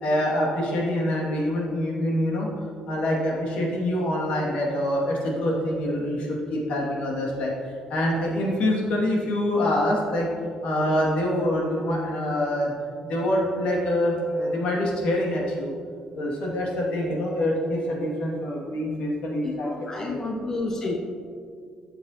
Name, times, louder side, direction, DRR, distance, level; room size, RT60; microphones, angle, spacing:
voice 1, 0.0-2.5 2.9-7.5 7.9-10.3 10.6-12.7 13.0-15.7 16.2-20.2 20.8-20.9, left 1 dB, 70° left, -3 dB, 2.1 m, -25 dB
voice 2, 19.4-21.0, left 2 dB, 25° left, 1 dB, 0.6 m, -30 dB
12.0 x 6.8 x 2.8 m, 2.2 s
cardioid pair, 165°, 2 cm